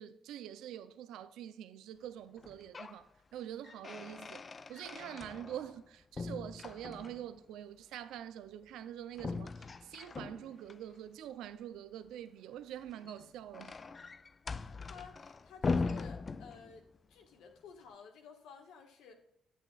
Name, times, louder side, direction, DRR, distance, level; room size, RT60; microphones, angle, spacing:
voice 1, 0.0-13.8, right 10 dB, 85° right, 0.5 m, -45 dB
sound 1, 2.4-3.0 3.4-5.8 6.1-7.4 9.1-10.8 12.8-17.0, left 4 dB, 35° left, 0.4 m, -40 dB
voice 2, 14.5-19.2, left 6 dB, 90° left, 1.5 m, -54 dB
9.1 x 8.2 x 2.4 m
cardioid pair, 90°, 0 cm